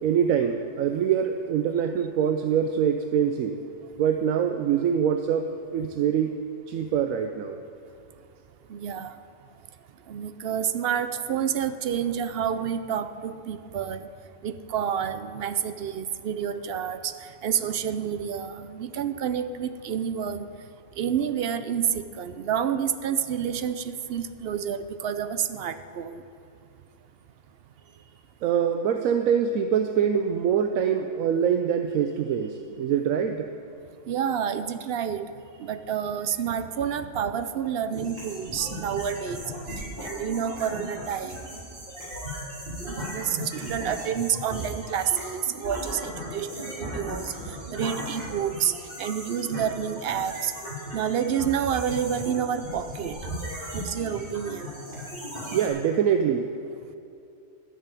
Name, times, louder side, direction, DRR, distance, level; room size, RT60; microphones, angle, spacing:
voice 1, 0.0-3.6 4.0-5.4 5.7-6.4 6.7-7.6 28.4-33.5 43.6-43.8 55.5-56.5, right 8 dB, 85° right, 6 dB, 1.0 m, -24 dB
voice 2, 8.7-9.2 10.1-14.1 14.4-17.1 17.4-20.5 21.0-26.2 34.1-35.3 35.6-39.4 40.0-41.5 42.8-48.7 49.0-50.5 50.9-53.2 53.7-54.7, right 8 dB, 60° right, 11 dB, 0.7 m, -29 dB
sound 1, 37.9-55.7, equal, 40° right, 3.8 m, -37 dB
12.5 x 6.8 x 9.0 m, 2.6 s
omnidirectional pair, 1.4 m